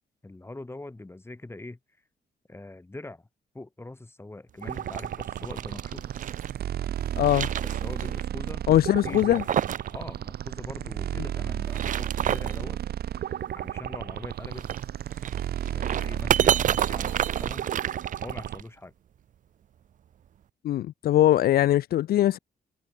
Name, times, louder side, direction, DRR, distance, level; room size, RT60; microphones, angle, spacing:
voice 1, 0.2-1.8 2.5-3.3 3.5-6.1 7.6-9.5 9.9-12.8 13.6-14.7 15.6-17.7 18.2-18.9, left 2 dB, 15° left, 3.6 m, -42 dB
sound 1, 4.6-18.6, right 11 dB, 80° right, 1.6 m, -33 dB
sound 2, 4.7-6.5 7.0-8.2 8.5-8.6 9.1-9.9 10.2-10.3 11.5-12.6 14.5-18.6, right 10 dB, 55° right, 0.5 m, -29 dB
voice 2, 7.2-7.5 8.7-9.4 20.6-22.4, left 13 dB, 75° left, 0.4 m, -21 dB
cardioid pair, 120°, 16 cm